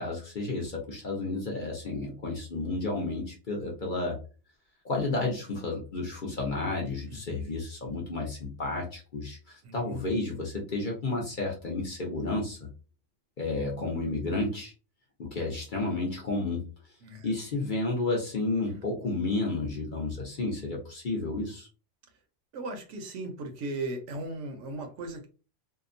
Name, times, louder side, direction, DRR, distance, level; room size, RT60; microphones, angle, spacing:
voice 1, 0.0-4.2 4.8-12.7 13.4-14.7 15.2-16.7 17.2-21.7, left 2 dB, 45° left, -1 dB, 0.8 m, -31 dB
voice 2, 7.1-7.4 9.6-10.0 17.0-17.3 18.7-18.8 22.5-25.3, right 2 dB, 70° right, 5 dB, 1.0 m, -37 dB
2.8 x 2.1 x 2.5 m, 0.34 s
omnidirectional pair, 1.3 m